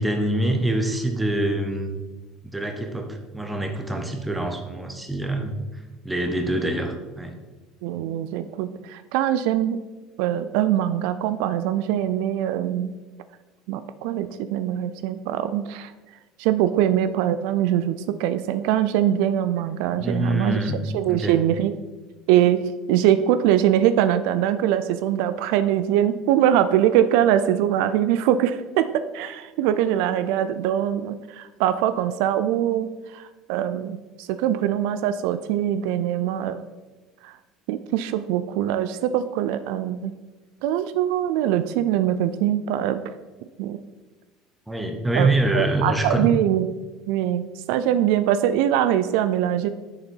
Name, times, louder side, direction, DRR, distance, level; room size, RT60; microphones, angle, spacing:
voice 1, 0.0-1.9 2.4-5.5 6.0-7.4 19.9-20.8 21.1-21.4 44.7-46.3, right 1 dB, 5° right, 4 dB, 0.7 m, -25 dB
voice 2, 7.8-9.8 10.2-12.9 13.7-15.9 16.4-21.7 22.3-22.6 22.9-36.7 37.2-37.4 37.7-40.1 40.6-43.0 43.6-43.8 45.1-45.3 45.5-46.7 47.1-49.7, right 11 dB, 60° right, 12 dB, 0.3 m, -22 dB
6.8 x 6.6 x 4.5 m, 1.2 s
cardioid pair, 180°, 0 cm